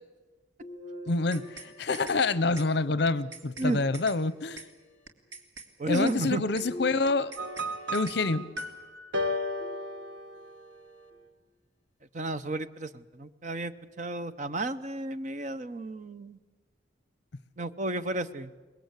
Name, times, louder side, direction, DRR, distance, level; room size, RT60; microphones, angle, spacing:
sound 1, 0.6-2.9 3.6-4.6 6.6-8.7 9.6-10.5 11.1-11.2 12.6-12.7, equal, 40° left, 1.4 m, -47 dB
voice 1, 1.1-4.6 5.9-7.3 7.9-8.5, left 3 dB, 60° left, 17 dB, 0.8 m, -27 dB
sound 2, 1.1-1.7 1.9-2.2 2.6-2.7 3.1-3.7 3.9-4.2 4.6-4.7 5.1-5.7 5.9-6.2 6.6-6.7 7.1-7.7 7.9-8.2 8.6-8.7, right 4 dB, 90° right, 2.2 m, -44 dB
voice 2, 5.8-6.4 12.1-16.4 17.6-18.5, right 2 dB, 40° right, 13 dB, 0.8 m, -32 dB
sound 3, 7.4-10.8, left 1 dB, 65° right, 1.3 m, -34 dB
23.0 x 21.0 x 8.2 m, 1.3 s
head